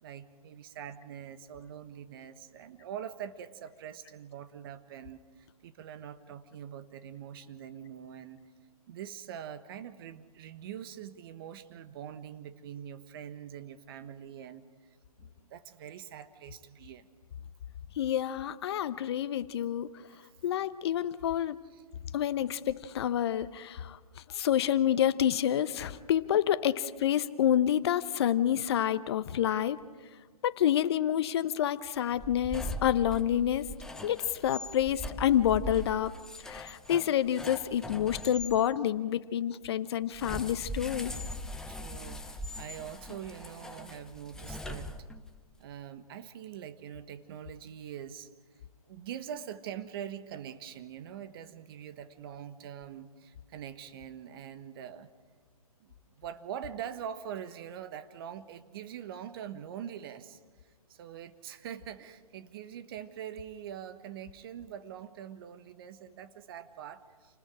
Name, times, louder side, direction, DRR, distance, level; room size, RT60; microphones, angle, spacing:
voice 1, 0.0-8.4 8.9-14.6 15.2-17.1 20.1-20.2 21.3-21.4 21.7-21.8 22.4-22.5 41.7-44.9 45.6-48.3 48.9-55.1 55.8-60.4 60.9-67.4, right 9 dB, 40° right, 11 dB, 1.3 m, -44 dB
voice 2, 18.0-19.9 20.4-21.6 22.1-24.0 24.3-29.8 30.4-33.7 34.0-36.1 36.4-41.1, left 10 dB, 45° left, 14 dB, 0.9 m, -28 dB
sound 1, 32.1-38.6 40.1-45.4, left 1 dB, 5° left, 0.8 m, -41 dB
28.5 x 19.5 x 4.9 m, 1.5 s
hypercardioid pair, 140°, 19 cm